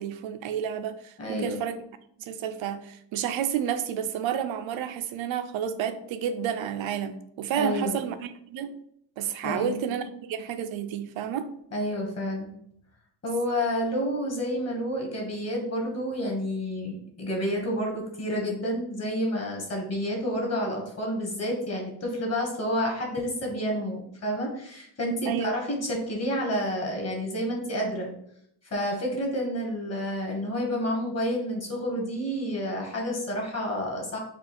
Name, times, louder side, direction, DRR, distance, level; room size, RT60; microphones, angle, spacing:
voice 1, 0.0-1.8 2.2-8.7 9.2-11.5 25.2-25.5, right 8 dB, 85° right, 0.6 m, -30 dB
voice 2, 1.2-1.6 7.6-8.0 9.4-9.8 11.7-12.5 13.2-28.1 28.7-34.2, equal, 35° left, 1.3 m, -29 dB
4.4 x 2.4 x 4.3 m
wide cardioid pair, 145°, 45 cm